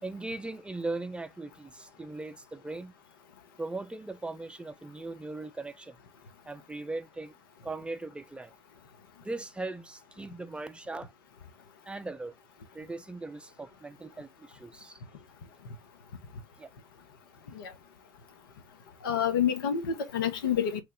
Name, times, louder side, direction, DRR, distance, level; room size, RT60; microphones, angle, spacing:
voice 1, 0.0-2.9 3.6-6.0 6.5-7.3 7.6-8.5 9.2-11.1 11.8-12.3 12.7-15.0 16.6-16.7, right 2 dB, 10° right, 0.5 m, -39 dB
voice 2, 19.0-20.8, left 8 dB, 75° left, 0.6 m, -28 dB
3.1 x 2.0 x 3.6 m
figure-of-eight pair, 60°, 12 cm